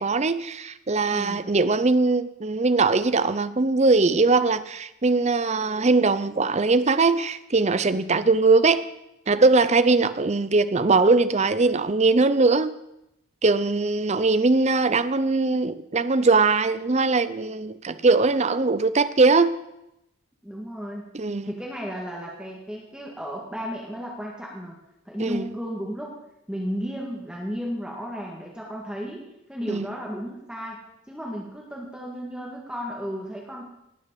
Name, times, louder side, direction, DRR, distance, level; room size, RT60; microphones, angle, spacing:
voice 1, 0.0-8.8 9.3-12.7 13.4-19.6 21.1-21.5 25.2-25.5 29.7-29.9, right 3 dB, 30° right, 0.6 m, -21 dB
voice 2, 1.1-1.4 8.0-8.3 20.4-21.1 21.4-24.8 25.1-26.2 26.5-33.7, equal, 5° right, 1.9 m, -34 dB
18.5 x 6.5 x 7.6 m
head